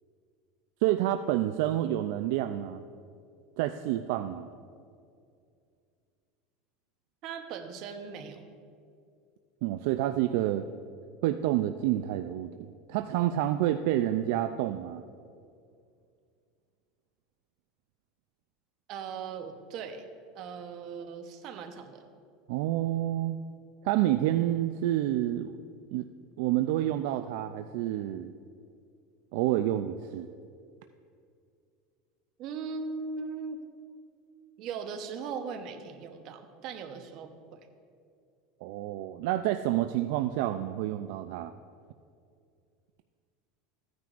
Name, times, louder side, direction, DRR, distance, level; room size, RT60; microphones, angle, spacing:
voice 1, 0.8-2.8 3.6-4.5 9.6-10.7 11.2-12.5 12.9-15.0 22.5-23.4 23.8-25.5 25.9-26.1 26.4-28.3 29.3-30.3 38.6-41.5, right 13 dB, 65° right, 8 dB, 0.3 m, -28 dB
voice 2, 7.2-8.4 18.9-20.0 20.3-22.0 32.4-33.6 34.6-37.7, right 5 dB, 45° right, 6 dB, 0.8 m, -39 dB
15.0 x 9.3 x 2.5 m, 2.3 s
supercardioid pair, 155°, 0 cm